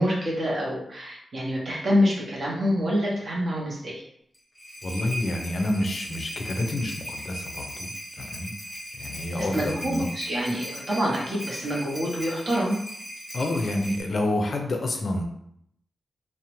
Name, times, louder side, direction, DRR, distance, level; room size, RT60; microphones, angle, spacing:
voice 1, 0.0-4.0 9.4-12.8, equal, 45° right, -3 dB, 0.6 m, -26 dB
sound 1, 4.3-14.0, equal, 10° left, 0.6 m, -38 dB
voice 2, 4.8-8.5 8.9-10.1 11.2-11.4 13.3-15.2, left 1 dB, 45° left, 2 dB, 0.4 m, -28 dB
2.7 x 2.0 x 2.9 m, 0.72 s
wide cardioid pair, 155°, 0 cm